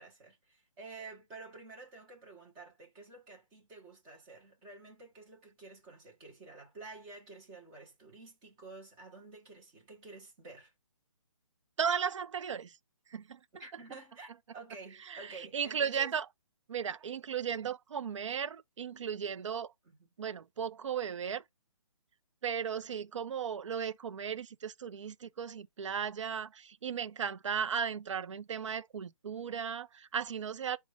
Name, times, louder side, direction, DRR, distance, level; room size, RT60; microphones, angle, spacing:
voice 1, 0.0-10.7 13.6-16.2 19.8-20.1, right 3 dB, 10° right, 0.7 m, -50 dB
voice 2, 11.8-12.7 13.1-13.4 15.1-15.2 15.5-16.2 16.7-19.7 20.2-21.4 22.4-30.8, right 7 dB, 65° right, 0.5 m, -35 dB
5.1 x 2.2 x 4.7 m
hypercardioid pair, 175°, 17 cm